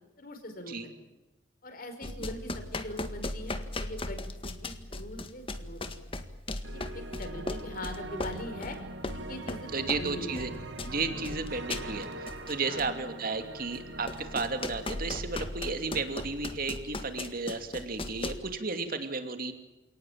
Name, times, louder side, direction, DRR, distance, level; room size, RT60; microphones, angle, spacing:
voice 1, 0.2-0.9 1.6-5.8 6.7-8.8 9.1-10.5 11.3-11.4 12.6-12.9, left 1 dB, 50° left, 6 dB, 5.4 m, -42 dB
sound 1, 2.0-10.1 10.4-12.9 13.7-13.8 14.1-18.4, left 2 dB, 30° left, 1.7 m, -37 dB
sound 2, 6.6-16.7, right 2 dB, 70° right, 2.3 m, -43 dB
voice 2, 9.7-10.5 10.9-19.5, right 4 dB, 50° right, 7 dB, 2.7 m, -33 dB
28.5 x 19.0 x 8.8 m, 1.0 s
head